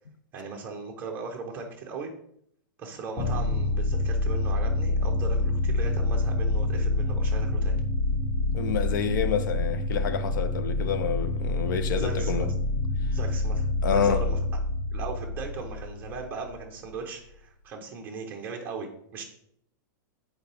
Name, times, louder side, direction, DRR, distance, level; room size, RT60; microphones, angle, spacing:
voice 1, 0.3-2.1 2.8-7.8 11.9-12.5 13.1-14.4 14.9-19.2, right 4 dB, 15° right, 0.9 m, -38 dB
sound 1, 3.2-16.6, left 2 dB, 10° left, 0.9 m, -27 dB
voice 2, 8.5-12.5 13.8-14.3, left 7 dB, 65° left, 0.6 m, -28 dB
6.9 x 4.5 x 3.4 m
supercardioid pair, 175°, 11 cm